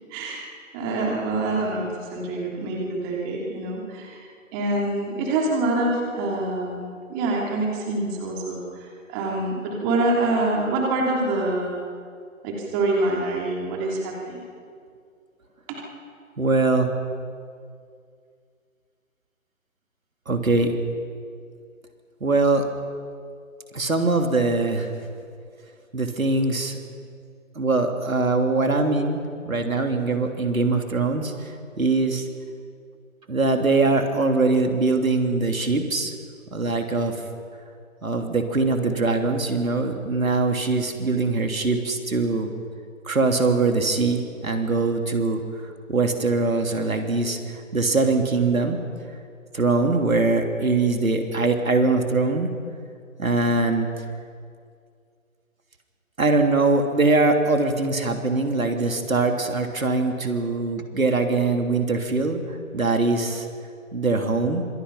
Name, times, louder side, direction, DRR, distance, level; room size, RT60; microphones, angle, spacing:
voice 1, 0.1-0.4 0.7-4.2 4.5-11.8 12.4-14.4 15.7-15.8, right 2 dB, 15° right, -1 dB, 3.0 m, -26 dB
voice 2, 16.4-16.9 20.3-20.7 22.2-22.6 23.7-24.9 25.9-26.8 27.5-32.3 33.3-36.1 36.5-37.2 38.0-42.5 43.0-45.4 45.9-48.8 49.5-52.5 53.2-53.9 56.2-63.5 63.9-64.7, right 3 dB, 85° right, 4 dB, 3.3 m, -22 dB
26.0 x 25.5 x 5.6 m, 2.2 s
figure-of-eight pair, 155°, 41 cm